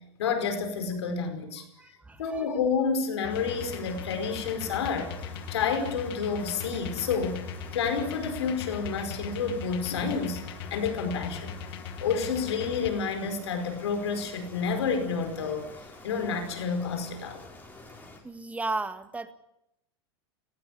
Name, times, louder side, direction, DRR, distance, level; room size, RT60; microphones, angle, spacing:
voice 1, 0.2-1.6 2.2-5.1 5.5-7.4 7.7-10.4 10.7-11.5 12.0-15.7 16.0-17.4, left 5 dB, 85° left, 7 dB, 5.1 m, -29 dB
voice 2, 1.8-2.4 18.2-19.3, right 3 dB, 10° right, 10 dB, 1.7 m, -34 dB
sound 1, 3.2-12.9, left 7 dB, 65° left, 2.0 m, -40 dB
sound 2, 3.3-18.2, left 2 dB, 10° left, 5.2 m, -48 dB
19.5 x 15.5 x 9.8 m, 0.83 s
supercardioid pair, 125°, 14 cm